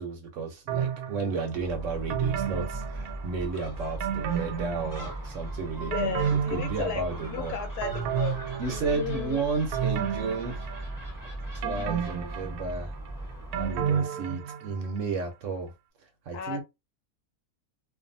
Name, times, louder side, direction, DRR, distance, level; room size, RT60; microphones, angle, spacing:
voice 1, 0.0-7.6 8.6-10.6 11.5-12.9 13.5-15.7 16.3-16.6, right 4 dB, 65° right, 0.9 m, -33 dB
sound 1, 0.7-1.5 2.1-3.5 4.0-5.3 5.7-7.4 7.8-9.2 9.7-11.2 11.6-14.9 15.2-15.3, right 8 dB, 80° right, 1.1 m, -31 dB
Gull seagull, 1.5-14.0, right 1 dB, 15° left, 1.0 m, -38 dB
voice 2, 5.8-8.4 8.7-9.4 16.3-16.6, left 8 dB, 85° left, 1.2 m, -34 dB
2.6 x 2.4 x 2.6 m
omnidirectional pair, 1.6 m